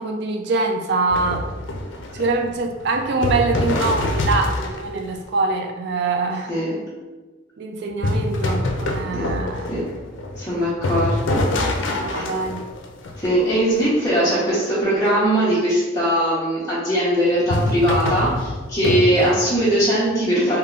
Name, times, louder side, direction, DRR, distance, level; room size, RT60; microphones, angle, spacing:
voice 1, 0.0-1.4 2.1-6.5 7.6-9.8 12.0-12.6, right 3 dB, 60° right, 4 dB, 0.3 m, -24 dB
sound 1, 1.1-5.1 8.0-13.7 17.4-19.6, left 1 dB, 80° left, 0.5 m, -25 dB
voice 2, 10.3-11.4 12.0-12.2 13.2-20.6, right 1 dB, 15° left, -12 dB, 0.8 m, -20 dB
3.5 x 2.2 x 3.5 m, 1.3 s
head